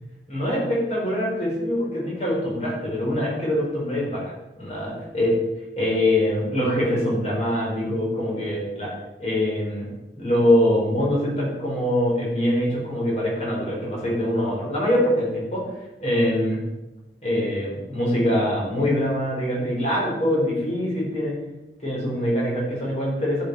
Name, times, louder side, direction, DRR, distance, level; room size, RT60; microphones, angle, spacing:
voice 1, 0.3-4.2 4.6-5.4 5.8-8.9 9.2-9.9 10.2-15.7 16.0-16.6 17.2-21.4 21.8-23.4, left 1 dB, 35° left, -4 dB, 4.6 m, -23 dB
11.0 x 8.1 x 4.8 m, 1.0 s
head